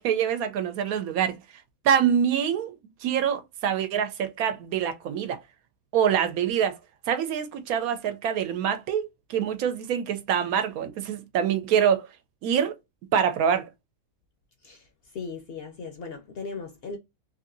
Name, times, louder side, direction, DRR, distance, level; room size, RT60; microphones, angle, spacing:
voice 1, 0.0-1.4 1.8-2.7 3.0-5.4 5.9-6.8 7.1-12.1 12.4-12.8 13.1-13.7, right 8 dB, 90° right, 1.1 m, -25 dB
voice 2, 15.1-17.0, left 4 dB, 60° left, 0.7 m, -37 dB
2.9 x 2.6 x 2.5 m
omnidirectional pair, 1.5 m